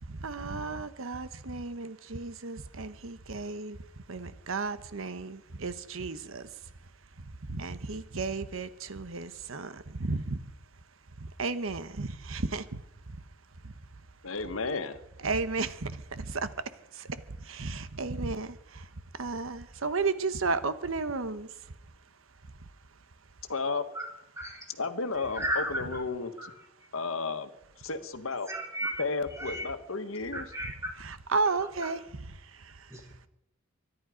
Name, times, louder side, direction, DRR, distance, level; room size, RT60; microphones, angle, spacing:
voice 1, 0.0-6.7 7.2-10.5 11.2-13.2 13.6-13.8 15.2-21.7 22.5-22.7 30.6-33.2, right 3 dB, 80° right, 12 dB, 1.1 m, -34 dB
voice 2, 14.2-15.0 23.5-23.8 24.8-26.5 26.9-27.5 27.8-28.5 29.0-30.5, left 4 dB, 90° left, 9 dB, 1.6 m, -33 dB
voice 3, 25.3-25.8 26.4-26.5 28.5-29.0 29.4-29.7 30.3-30.9 32.9-33.0, equal, 15° right, 1 dB, 3.8 m, -33 dB
24.0 x 11.0 x 5.1 m, 0.84 s
head